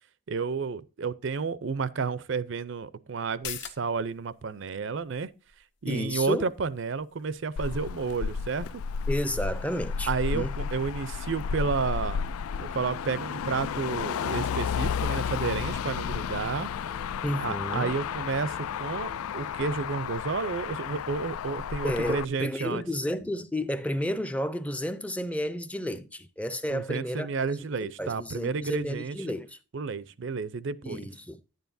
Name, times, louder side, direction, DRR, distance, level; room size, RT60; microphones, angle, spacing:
voice 1, 0.3-5.3 5.8-8.8 10.1-12.2 12.6-16.7 17.4-22.8 26.7-29.2 29.7-31.0, right 5 dB, 60° right, 0.5 m, -31 dB
sound 1, 3.2-10.4 10.7-10.8, left 10 dB, 55° left, 0.8 m, -48 dB
voice 2, 5.9-6.5 9.1-10.7 17.2-17.9 21.8-27.3 27.8-29.6 30.8-31.4, equal, 5° left, 0.5 m, -32 dB
Motor vehicle (road), 7.6-22.2, left 7 dB, 85° left, 0.4 m, -32 dB
sound 2, 11.3-19.7, equal, 35° left, 1.1 m, -50 dB
11.0 x 9.2 x 2.6 m
head